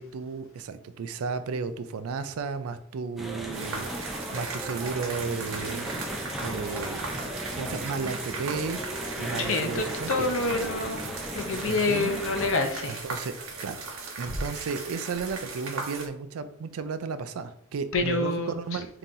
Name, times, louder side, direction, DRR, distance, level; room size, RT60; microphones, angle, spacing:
voice 1, 0.0-6.0 6.4-7.2 7.6-10.3 11.7-12.2 12.8-13.3 13.6-13.8 14.2-18.9, right 5 dB, 85° right, 11 dB, 0.4 m, -34 dB
sound 1, 3.2-12.5, equal, ahead, 0.4 m, -36 dB
sound 2, 3.5-16.1, right 4 dB, 65° right, 0.8 m, -38 dB
voice 2, 9.4-13.0 14.3-14.4 17.9-18.8, left 3 dB, 65° left, 5 dB, 0.6 m, -28 dB
5.4 x 2.8 x 2.5 m, 0.68 s
head